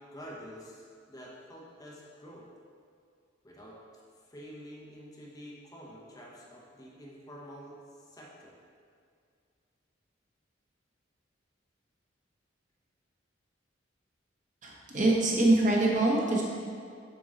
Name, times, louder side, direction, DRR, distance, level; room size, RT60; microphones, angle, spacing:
voice 1, 0.1-2.5 3.4-3.8 4.3-7.8 8.1-8.6, equal, 20° left, -4 dB, 0.9 m, -48 dB
voice 2, 14.6-16.4, right 2 dB, 40° right, -3 dB, 1.1 m, -24 dB
6.9 x 4.7 x 3.9 m, 2.2 s
head